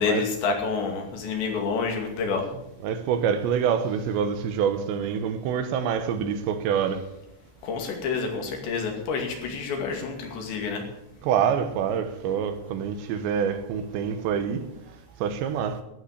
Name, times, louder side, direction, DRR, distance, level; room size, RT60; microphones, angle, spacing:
voice 1, 0.0-2.5 7.6-10.8, left 5 dB, 75° left, 4.6 m, -28 dB
voice 2, 2.8-7.1 11.2-14.6 15.2-15.8, right 7 dB, 80° right, 3.2 m, -26 dB
13.0 x 9.3 x 8.0 m
omnidirectional pair, 5.3 m